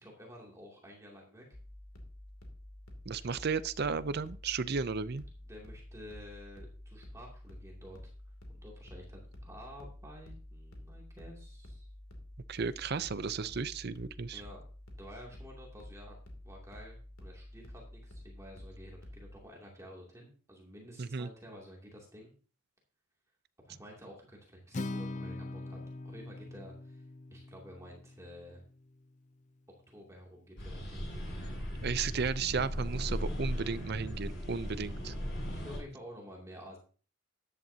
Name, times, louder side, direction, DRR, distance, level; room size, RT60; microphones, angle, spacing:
voice 1, 0.0-1.5 3.2-3.3 5.5-8.1 8.5-11.9 14.3-14.6 15.0-16.1 16.4-22.3 23.6-25.8 26.0-27.0 27.3-28.6 29.9-31.1 35.5-36.8, equal, 15° right, -2 dB, 2.6 m, -51 dB
sound 1, 1.5-19.4, left 1 dB, 85° left, 2.7 m, -50 dB
voice 2, 3.1-5.2 12.5-14.4 21.0-21.3 31.8-35.1, right 5 dB, 50° right, 16 dB, 0.5 m, -34 dB
Acoustic guitar, 24.7-29.0, left 2 dB, 35° left, 0.5 m, -42 dB
sound 2, 30.6-35.8, equal, 55° left, 7.0 m, -37 dB
13.5 x 10.5 x 2.8 m, 0.38 s
head